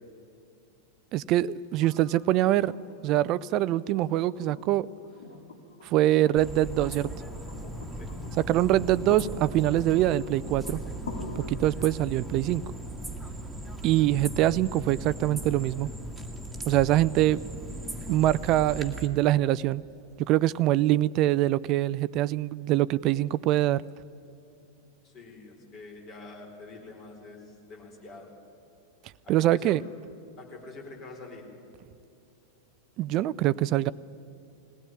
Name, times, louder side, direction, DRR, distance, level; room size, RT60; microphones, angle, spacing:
voice 1, 1.1-2.7 3.0-4.9 5.8-7.1 8.4-10.8 11.4-12.6 13.8-15.9 16.7-17.4 18.1-19.8 20.2-23.8 29.3-29.8 33.0-33.9, right 14 dB, 40° right, 20 dB, 0.4 m, -24 dB
sound 1, 1.8-15.8 17.5-17.6, left 3 dB, 65° left, 2.7 m, -46 dB
sound 2, 6.4-19.1, right 1 dB, 5° right, 2.1 m, -38 dB
voice 2, 25.0-28.3 29.2-29.8 30.4-31.5, left 3 dB, 35° left, 2 dB, 4.3 m, -45 dB
20.5 x 17.5 x 9.8 m, 2.6 s
figure-of-eight pair, 90°, 0 cm